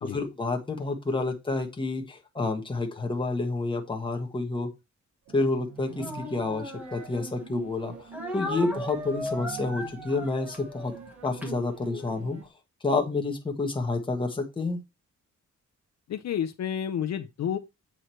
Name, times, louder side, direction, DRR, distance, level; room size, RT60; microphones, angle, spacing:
voice 1, 0.0-4.7 5.3-7.9 8.3-10.9 11.2-12.4 12.8-14.8, left 3 dB, 15° left, 1.4 m, -29 dB
sound 1, 5.3-12.4, right 7 dB, 60° right, 1.2 m, -45 dB
Speech, 5.9-7.5 8.1-12.2, equal, 5° right, 1.6 m, -38 dB
voice 2, 16.1-17.6, left 9 dB, 60° left, 0.6 m, -30 dB
8.1 x 4.8 x 4.4 m
wide cardioid pair, 180°, 30 cm